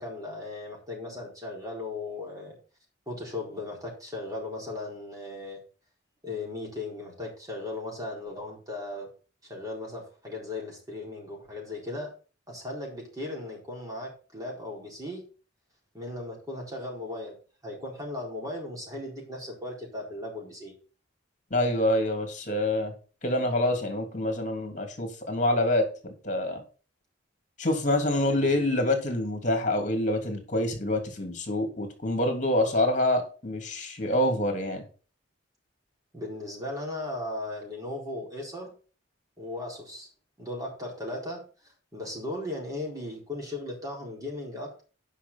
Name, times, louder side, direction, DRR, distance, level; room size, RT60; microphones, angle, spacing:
voice 1, 0.0-2.6 3.1-5.6 6.2-9.1 9.5-12.1 12.5-15.2 15.9-17.4 17.6-20.7 28.2-28.6 36.1-38.7 39.4-40.1 40.4-41.4 41.9-44.8, left 2 dB, 20° right, -1 dB, 4.3 m, -37 dB
voice 2, 21.5-22.9 23.2-26.6 27.6-34.8, left 1 dB, 40° left, 4 dB, 2.9 m, -26 dB
9.9 x 5.8 x 5.6 m, 0.36 s
head